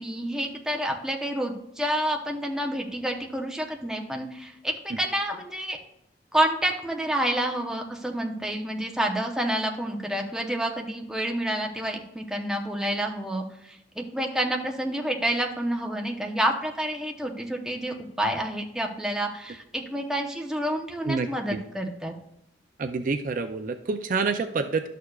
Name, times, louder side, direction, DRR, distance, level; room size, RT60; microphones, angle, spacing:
voice 1, 0.0-5.8 6.3-22.1, right 1 dB, 5° right, 1 dB, 0.8 m, -29 dB
voice 2, 21.1-21.6 22.8-24.9, right 4 dB, 45° right, 7 dB, 0.4 m, -28 dB
12.0 x 6.6 x 2.4 m, 0.81 s
head